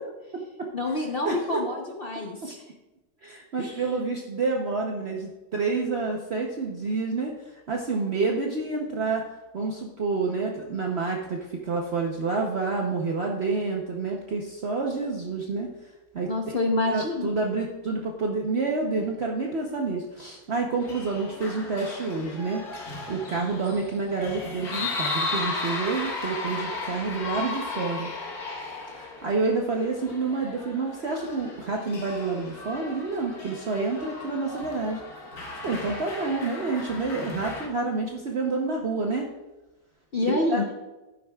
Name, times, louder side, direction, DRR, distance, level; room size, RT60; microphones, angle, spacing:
voice 1, 0.7-2.6 3.6-3.8 16.3-17.3 40.1-40.7, left 2 dB, 70° left, 1 dB, 0.5 m, -27 dB
voice 2, 1.2-1.6 3.2-7.3 7.7-9.2 9.5-15.7 16.1-16.5 16.9-28.1 28.9-35.0 35.6-39.3 40.3-40.6, right 3 dB, 65° right, 0 dB, 0.6 m, -28 dB
sound 1, 20.8-37.7, left 3 dB, 50° left, 1.6 m, -35 dB
11.5 x 9.9 x 2.3 m, 1.1 s
omnidirectional pair, 2.3 m